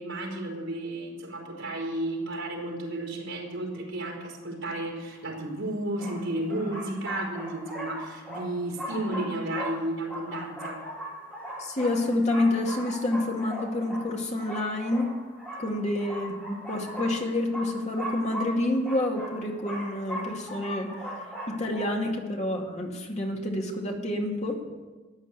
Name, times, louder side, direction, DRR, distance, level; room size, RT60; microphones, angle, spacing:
voice 1, 0.0-10.9, right 1 dB, 70° right, -1 dB, 4.3 m, -33 dB
sound 1, 5.2-5.3 6.0-21.8, right 1 dB, 10° left, 6.6 m, -39 dB
voice 2, 11.6-15.1 15.6-20.9 21.5-24.6, left 1 dB, 35° left, 1 dB, 2.2 m, -28 dB
14.0 x 11.0 x 8.4 m, 1.3 s
head